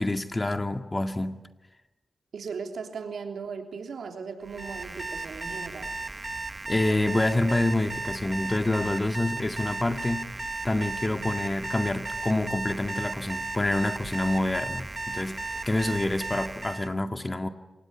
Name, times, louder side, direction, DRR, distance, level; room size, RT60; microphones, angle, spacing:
voice 1, 0.0-1.4 6.7-10.3 10.6-17.5, left 2 dB, 25° left, 2.0 m, -27 dB
voice 2, 2.3-5.9, right 5 dB, 75° right, 3.2 m, -37 dB
Alarm, 4.4-16.9, right 3 dB, 35° right, 1.1 m, -35 dB
27.5 x 20.5 x 9.9 m
cardioid pair, 50°, 0 cm